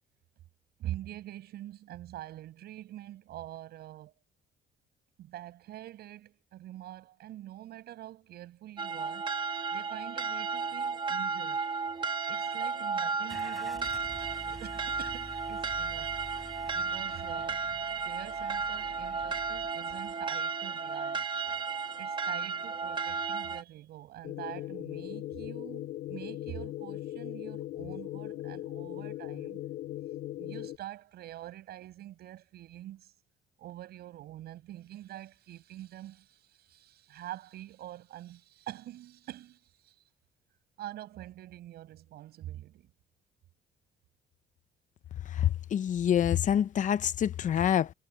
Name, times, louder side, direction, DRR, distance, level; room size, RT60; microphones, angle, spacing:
voice 1, 0.8-4.1 5.2-9.3 9.7-11.7 12.3-14.0 14.4-16.2 16.7-21.4 22.0-29.6 30.3-33.1 33.6-40.0 40.8-42.9, right 13 dB, 70° right, 7.5 m, -45 dB
sound 1, 8.8-23.6, right 5 dB, 30° right, 1.6 m, -34 dB
Car / Engine starting, 13.3-19.7, equal, ahead, 7.0 m, -49 dB
sound 2, 24.2-30.8, left 14 dB, 75° left, 2.5 m, -39 dB
voice 2, 45.3-47.9, left 9 dB, 50° left, 0.9 m, -26 dB
cardioid pair, 110°, 17 cm